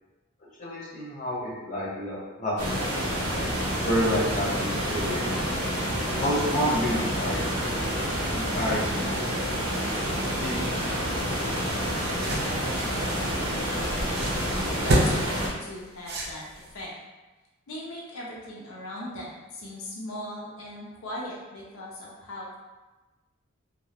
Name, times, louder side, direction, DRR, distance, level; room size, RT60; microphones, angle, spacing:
voice 1, 0.6-3.1 3.9-5.5 6.2-7.4 8.3-9.5 10.4-10.8, equal, 35° left, -7 dB, 0.6 m, -29 dB
sound 1, 2.6-15.5, equal, 90° right, 0.6 m, -28 dB
sound 2, 11.7-16.8, right 1 dB, 45° right, 0.4 m, -30 dB
voice 2, 14.6-16.9 17.7-22.5, left 1 dB, 80° left, -4 dB, 0.5 m, -38 dB
2.2 x 2.0 x 2.8 m, 1.1 s
head